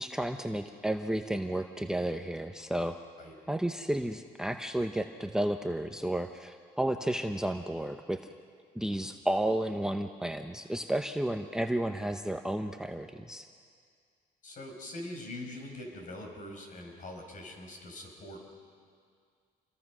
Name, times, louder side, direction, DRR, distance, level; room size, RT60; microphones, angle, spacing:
voice 1, 0.0-3.0 3.5-8.2 8.7-13.5, right 1 dB, 5° right, 7 dB, 0.8 m, -32 dB
voice 2, 14.4-18.4, left 1 dB, 50° left, 2 dB, 5.5 m, -43 dB
28.0 x 22.0 x 6.2 m, 2.1 s
cardioid pair, 110°, 17 cm